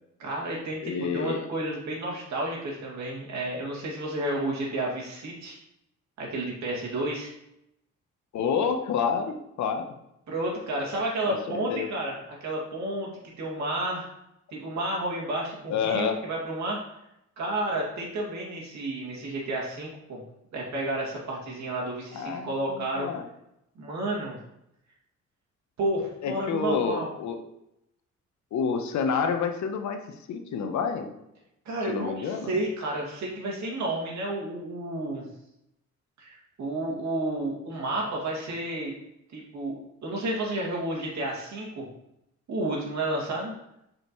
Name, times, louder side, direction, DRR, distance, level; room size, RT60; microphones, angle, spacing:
voice 1, 0.2-5.6 6.2-7.3 10.3-12.1 12.4-13.1 13.4-14.1 14.5-16.8 17.4-20.2 20.5-23.1 23.8-24.4 25.8-27.1 31.7-35.3 36.2-38.9 39.3-41.9 42.5-43.5, right 1 dB, 65° right, -3 dB, 2.4 m, -31 dB
voice 2, 0.8-1.4 8.3-9.9 11.3-11.9 15.7-16.2 22.1-23.3 26.2-27.4 28.5-31.1 31.9-32.5, left 6 dB, 70° left, 6 dB, 0.9 m, -29 dB
6.7 x 5.1 x 3.1 m, 0.82 s
cardioid pair, 90°, 30 cm